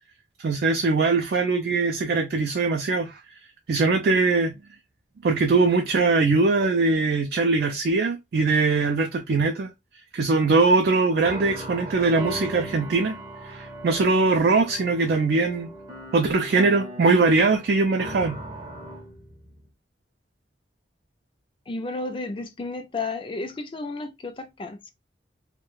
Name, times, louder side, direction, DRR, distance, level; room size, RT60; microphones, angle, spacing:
voice 1, 0.4-3.2 3.7-4.5 5.2-9.7 10.1-13.1 13.4-15.7 16.1-18.4, right 3 dB, 60° right, 0.3 m, -21 dB
sound 1, 11.2-19.7, right 1 dB, 20° right, 0.6 m, -38 dB
voice 2, 21.7-24.9, left 3 dB, 30° left, 0.4 m, -32 dB
2.3 x 2.1 x 3.0 m
head